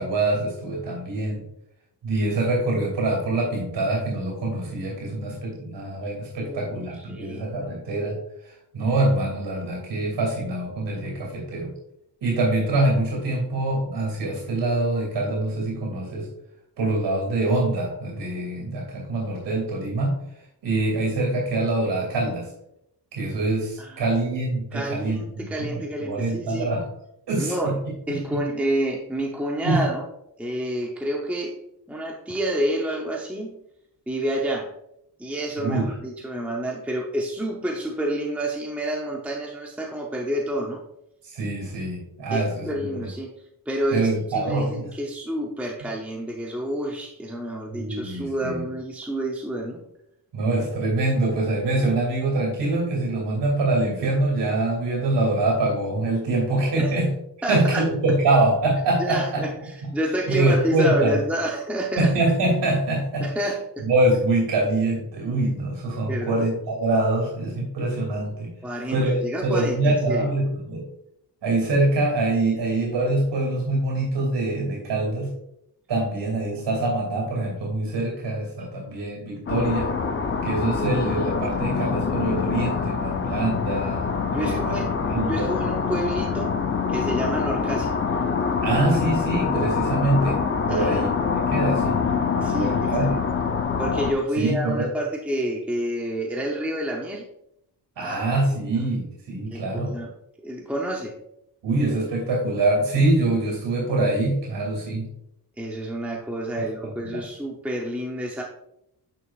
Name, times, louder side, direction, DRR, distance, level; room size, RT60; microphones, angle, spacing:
voice 1, 0.0-1.4 2.0-8.2 8.4-11.7 12.2-16.3 16.8-20.1 20.6-22.5 23.1-26.8 27.3-27.7 28.1-28.2 29.6-29.8 35.6-35.9 41.2-43.1 43.9-44.9 47.7-48.6 50.3-57.1 57.5-59.4 60.3-61.1 62.0-63.3 63.8-68.5 68.9-69.1 69.4-70.8 71.4-75.3 75.9-79.9 80.4-84.0 84.3-84.8 85.1-85.5 88.6-90.4 90.7-92.0 92.5-93.1 94.4-94.9 98.0-99.9 101.6-105.1 106.6-106.7 107.0-107.2, right 2 dB, 90° right, 0 dB, 2.7 m, -24 dB
voice 2, 6.4-7.5 23.8-24.1 24.7-26.7 27.4-27.7 28.1-30.1 30.4-31.6 31.9-33.6 34.1-34.7 35.2-40.8 42.3-43.3 43.7-49.8 56.8-57.0 57.4-57.8 59.0-62.1 63.2-63.8 66.1-66.4 68.6-70.3 83.6-83.8 84.3-84.9 85.2-86.6 86.9-87.9 90.7-91.1 92.4-93.1 93.8-97.2 98.0-98.7 99.5-100.1 100.4-101.1 105.6-108.4, right 1 dB, 5° right, -1 dB, 0.7 m, -29 dB
sound 1, 79.5-94.1, left 5 dB, 30° left, 0.6 m, -25 dB
9.4 x 5.9 x 2.4 m, 0.79 s
wide cardioid pair, 145°, 41 cm